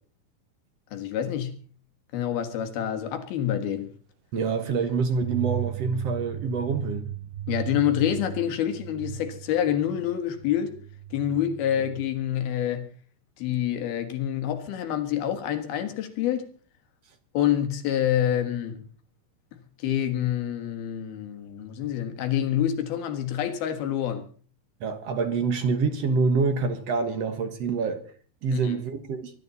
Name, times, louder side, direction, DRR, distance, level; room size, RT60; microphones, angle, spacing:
voice 1, 0.9-1.6 2.1-3.9 7.5-10.7 11.1-12.9 13.4-16.5 17.3-18.8 19.8-24.3 28.5-28.8, left 10 dB, 85° left, 3.5 m, -27 dB
voice 2, 4.3-7.1 24.8-28.0 28.4-29.3, right 4 dB, 55° right, 2.1 m, -26 dB
sound 1, 5.2-12.0, right 12 dB, 90° right, 2.9 m, -36 dB
24.0 x 12.0 x 4.1 m
omnidirectional pair, 4.2 m